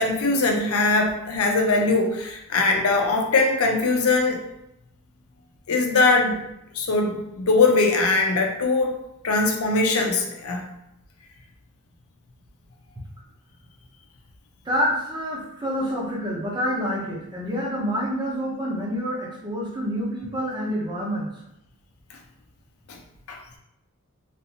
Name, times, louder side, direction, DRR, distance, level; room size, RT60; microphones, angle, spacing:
voice 1, 0.0-4.4 5.7-6.4 6.7-8.9 9.2-10.6 23.3-23.4, left 3 dB, 80° left, 2 dB, 0.6 m, -21 dB
voice 2, 14.6-21.3, equal, 20° right, -3 dB, 0.7 m, -27 dB
3.3 x 2.6 x 2.8 m, 0.83 s
head